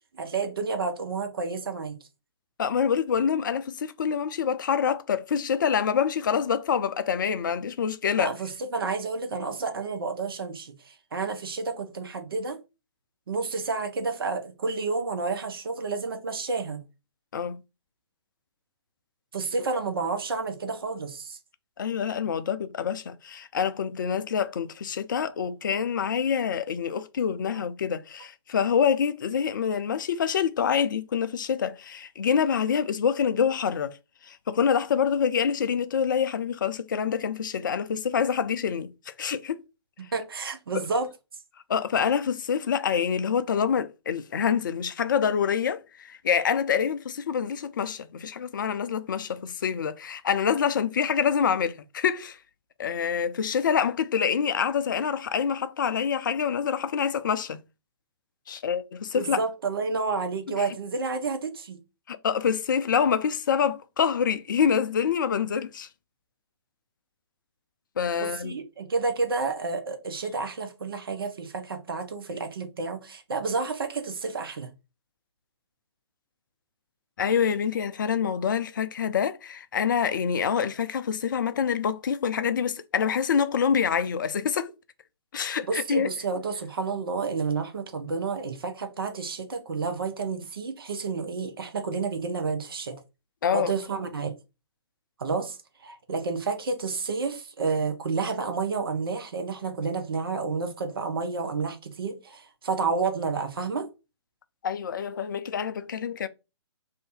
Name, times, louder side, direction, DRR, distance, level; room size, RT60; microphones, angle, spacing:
voice 1, 0.1-2.0 8.2-12.6 13.3-16.8 19.3-21.4 40.0-41.1 59.1-61.8 68.2-74.7 85.7-92.9 93.5-94.3 95.2-95.6 95.8-103.9, right 4 dB, 55° right, 0.7 m, -30 dB
voice 2, 2.6-8.3 17.3-17.6 21.8-33.9 34.3-39.6 40.7-40.8 41.7-45.8 46.1-52.4 52.8-57.6 58.5-59.4 60.6-60.7 62.1-65.9 68.0-68.6 77.2-84.7 85.3-86.1 93.4-93.7 104.6-106.3, left 7 dB, 45° left, 0.4 m, -26 dB
2.6 x 2.6 x 3.6 m
figure-of-eight pair, 130°, 15 cm